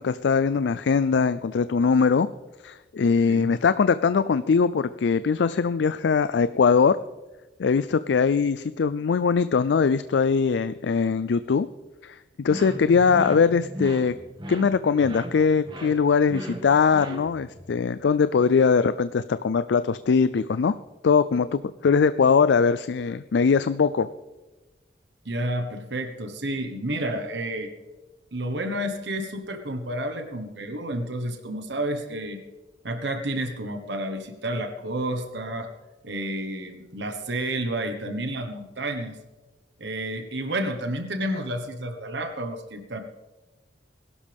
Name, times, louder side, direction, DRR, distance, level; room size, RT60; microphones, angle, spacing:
voice 1, 0.0-2.3 2.6-7.0 7.6-11.7 12.0-14.1 14.5-20.7 21.0-24.1, left 5 dB, 70° left, 14 dB, 0.4 m, -21 dB
sound 1, 12.5-17.6, equal, 30° right, 1.8 m, -38 dB
voice 2, 25.2-27.7 28.3-32.4 32.8-35.7 36.0-39.1 39.8-43.0, right 1 dB, 75° right, 6 dB, 1.3 m, -30 dB
21.0 x 12.0 x 3.5 m, 1.2 s
head